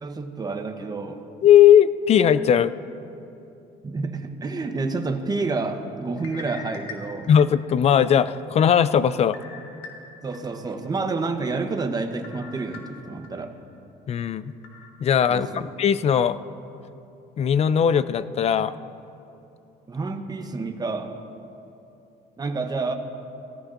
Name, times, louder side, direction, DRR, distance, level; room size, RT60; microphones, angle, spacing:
voice 1, 0.0-1.2 3.8-7.3 10.2-13.5 15.3-15.7 19.9-21.2 22.4-22.9, right 3 dB, 25° right, 6 dB, 0.9 m, -29 dB
voice 2, 1.4-2.7 7.3-9.4 14.1-14.5 15.0-16.4 17.4-18.7, left 9 dB, 40° left, 15 dB, 0.4 m, -18 dB
sound 1, 6.2-7.9 8.4-8.5 9.3-10.4 10.8-10.9 12.2-13.3 13.7-13.8 14.6-14.9, left 5 dB, 80° left, 1.5 m, -42 dB
17.0 x 14.5 x 2.5 m, 2.8 s
cardioid pair, 110°, 17 cm